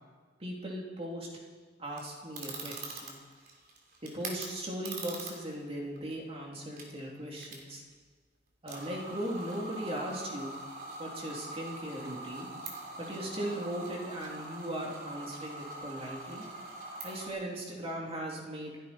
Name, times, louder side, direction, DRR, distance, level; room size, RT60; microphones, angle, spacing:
voice 1, 0.4-1.3 1.8-3.2 4.0-7.8 8.6-10.6 11.0-12.5 13.0-16.5 17.0-18.8, right 1 dB, 35° right, -2 dB, 2.9 m, -38 dB
sound 1, 1.9-4.5 4.9-5.6 6.0-6.1 6.6-6.8 7.4-7.6 7.9-8.0 8.7-17.3, right 3 dB, 55° right, 3.1 m, -43 dB
27.0 x 11.0 x 4.4 m, 1.5 s
head